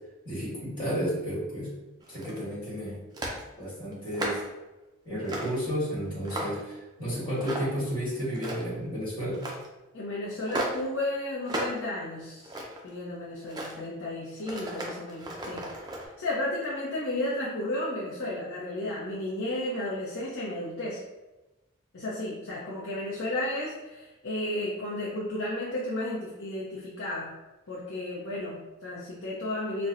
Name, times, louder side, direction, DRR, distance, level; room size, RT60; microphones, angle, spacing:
voice 1, 0.2-1.7 2.1-3.0 3.6-4.4 5.0-9.4, equal, 25° left, -8 dB, 1.4 m, -32 dB
sound 1, 2.0-2.5 3.1-3.4 3.9-4.5 5.2-5.6 6.0-6.7 7.4-7.8 8.2-8.8 9.3-9.7 10.5-10.9 11.5-11.8 12.2-12.9 13.4-13.8 14.4-16.1, right 1 dB, 20° right, 0.4 m, -35 dB
voice 2, 9.9-12.5 12.8-15.7 16.2-21.0 21.9-27.3 27.7-29.9, left 1 dB, 75° left, -6 dB, 0.7 m, -33 dB
4.2 x 2.1 x 2.5 m, 1.1 s
head